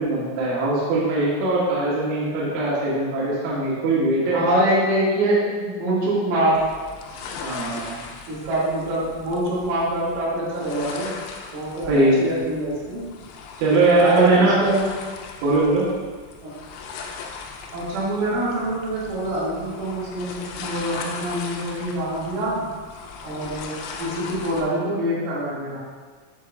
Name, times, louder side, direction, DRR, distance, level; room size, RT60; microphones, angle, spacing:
voice 1, 0.0-4.4 7.4-8.0 11.9-12.3 13.6-14.6 15.4-15.9, right 2 dB, 90° right, -7 dB, 4.0 m, -21 dB
voice 2, 4.3-6.6 8.3-11.1 11.5-13.0 14.0-14.8 16.4-16.5 17.7-22.6 23.2-23.7 24.0-25.8, right 1 dB, 70° right, -9 dB, 4.4 m, -24 dB
sound 1, 6.5-24.6, left 5 dB, 85° left, 3.3 m, -38 dB
7.9 x 7.4 x 2.4 m, 1.5 s
omnidirectional pair, 6.0 m